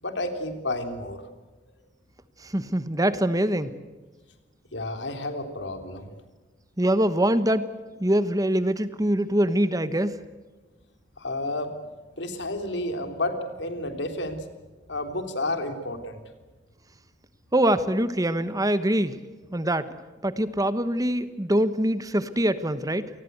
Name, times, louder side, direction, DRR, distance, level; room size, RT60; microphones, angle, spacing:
voice 1, 0.0-1.2 4.7-6.1 11.2-11.7 12.2-14.4 14.9-16.2, left 2 dB, 75° left, 7 dB, 3.4 m, -31 dB
voice 2, 2.4-3.7 6.8-7.7 8.0-10.2 17.5-19.2 19.5-19.9 20.2-23.1, right 1 dB, 20° right, 13 dB, 1.1 m, -24 dB
28.5 x 20.0 x 8.1 m, 1.3 s
head